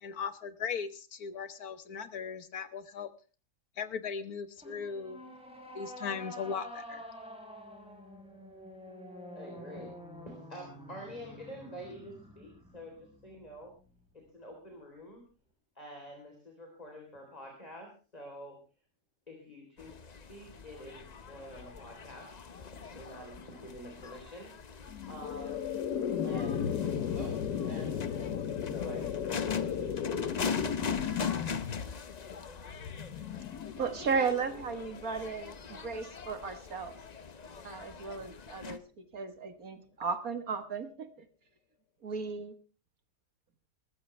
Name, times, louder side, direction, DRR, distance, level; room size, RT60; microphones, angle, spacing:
voice 1, 0.0-3.1 3.8-5.2 5.7-7.0, left 6 dB, 70° left, 11 dB, 1.7 m, -38 dB
sound 1, 4.6-14.0, equal, 5° right, 4.2 m, -48 dB
voice 2, 9.3-9.9 10.2-13.7 14.1-15.2 15.8-18.6 19.3-22.3 22.9-25.7 26.2-28.3 28.7-29.4 29.7-30.2, equal, 25° left, 2 dB, 3.9 m, -47 dB
sound 2, 19.8-38.8, left 5 dB, 40° left, 0.6 m, -41 dB
sound 3, 24.9-36.0, left 8 dB, 85° left, 1.6 m, -36 dB
voice 3, 33.8-37.0 37.6-41.1 42.0-42.6, right 5 dB, 60° right, 9 dB, 1.9 m, -35 dB
20.5 x 14.5 x 3.3 m, 0.35 s
omnidirectional pair, 1.7 m